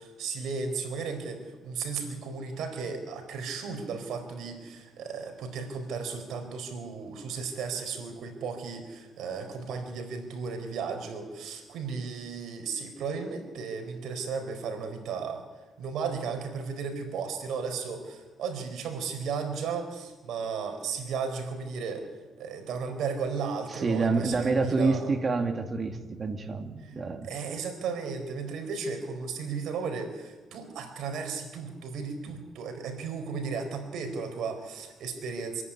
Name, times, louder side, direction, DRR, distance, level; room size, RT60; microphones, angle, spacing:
voice 1, 0.0-15.4 15.8-22.1 22.4-25.1 26.8-26.9 27.2-35.6, right 5 dB, 80° right, 5 dB, 4.3 m, -35 dB
voice 2, 23.7-27.3, right 3 dB, 40° right, 6 dB, 2.4 m, -27 dB
24.5 x 11.0 x 10.0 m, 1.3 s
cardioid pair, 90°, 0 cm